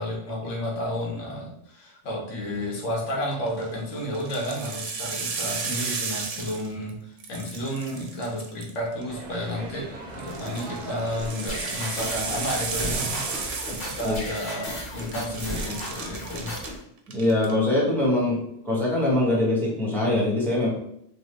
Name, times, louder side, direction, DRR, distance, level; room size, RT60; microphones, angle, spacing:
voice 1, 0.0-9.9 10.1-16.5 18.3-18.4, equal, 85° left, -1 dB, 1.2 m, -32 dB
sound 1, 3.3-3.7 4.1-6.9 7.2-9.0 10.2-14.7 15.0-16.7 17.1-17.5, right 5 dB, 80° right, 0.9 m, -33 dB
sound 2, 9.1-13.5, right 2 dB, 50° right, 0.5 m, -39 dB
sound 3, 11.5-16.8, left 1 dB, 45° left, 1.2 m, -35 dB
voice 2, 17.1-18.4 18.6-20.7, left 1 dB, ahead, -5 dB, 0.7 m, -23 dB
3.2 x 2.1 x 3.0 m, 0.73 s
omnidirectional pair, 1.2 m